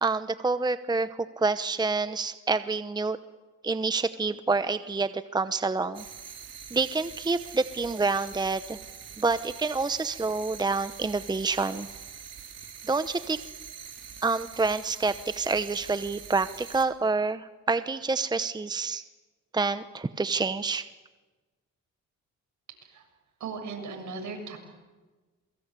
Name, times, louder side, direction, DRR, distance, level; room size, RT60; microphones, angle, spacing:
voice 1, 0.0-1.1 1.4-3.2 3.6-6.0 6.7-8.8 9.2-11.9 12.9-13.4 14.2-19.0 19.5-20.8, right 3 dB, 15° right, 12 dB, 0.9 m, -27 dB
sound 1, 5.9-16.8, right 7 dB, 55° right, 3.8 m, -44 dB
voice 2, 23.4-24.6, right 4 dB, 70° right, 4 dB, 7.5 m, -37 dB
28.0 x 23.5 x 8.3 m, 1.2 s
cardioid pair, 90°, 30 cm